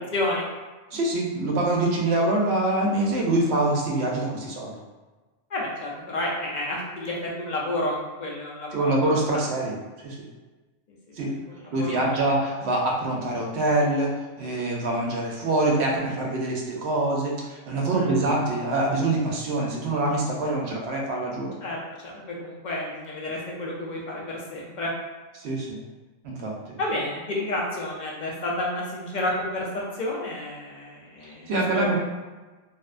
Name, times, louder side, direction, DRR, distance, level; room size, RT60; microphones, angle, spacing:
voice 1, 0.1-0.4 5.5-8.9 10.9-11.2 11.5-12.3 17.9-18.1 20.4-20.5 21.6-21.8 22.0-24.9 26.8-29.7 29.9-32.0, left 1 dB, 60° left, -3 dB, 0.5 m, -30 dB
voice 2, 0.9-4.7 8.7-9.8 10.0-10.2 11.2-11.3 11.7-21.5 25.4-25.8 26.2-26.5 31.5-32.0, right 2 dB, 65° right, -2 dB, 0.8 m, -25 dB
2.5 x 2.1 x 2.4 m, 1.3 s
omnidirectional pair, 1.2 m